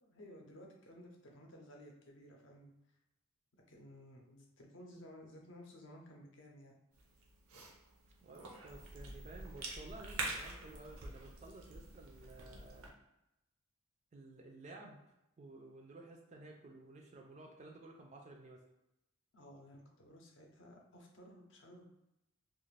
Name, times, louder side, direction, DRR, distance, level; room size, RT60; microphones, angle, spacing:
voice 1, 0.0-2.7 3.7-6.8 19.3-21.8, equal, 60° left, 0 dB, 0.6 m, -56 dB
Cough / Chewing mastication, 6.9-12.9, right 2 dB, 85° right, 0.6 m, -46 dB
voice 2, 8.2-12.9 14.1-15.0 15.4-18.7, right 2 dB, 30° right, 1 dB, 0.3 m, -54 dB
2.4 x 2.4 x 3.2 m, 0.89 s
head